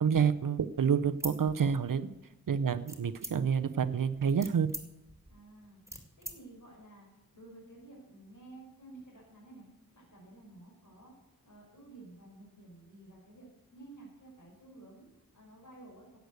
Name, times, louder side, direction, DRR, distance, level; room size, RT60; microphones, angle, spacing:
voice 1, 0.0-2.1 2.5-4.7, right 7 dB, 65° right, 12 dB, 0.6 m, -28 dB
sound 1, 1.2-2.2 2.9-3.7 4.1-6.4, right 1 dB, 10° right, 2.2 m, -43 dB
voice 2, 5.3-5.8 6.2-9.7 9.9-11.1 11.4-16.2, right 2 dB, 60° left, -3 dB, 5.1 m, -53 dB
11.5 x 8.0 x 8.1 m, 1.0 s
wide cardioid pair, 75°, 35 cm